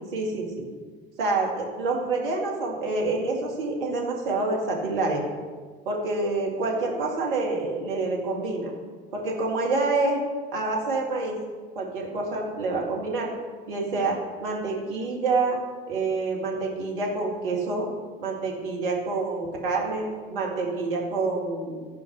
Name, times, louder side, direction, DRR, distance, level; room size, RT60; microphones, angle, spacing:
voice 1, 0.1-0.6 1.2-5.2 5.9-8.7 9.1-10.2 10.5-11.4 11.8-13.3 13.7-15.6 15.9-17.9 18.2-21.9, right 3 dB, 70° right, -2 dB, 2.2 m, -27 dB
13.5 x 5.2 x 6.4 m, 1.5 s
figure-of-eight pair, 65°, 29 cm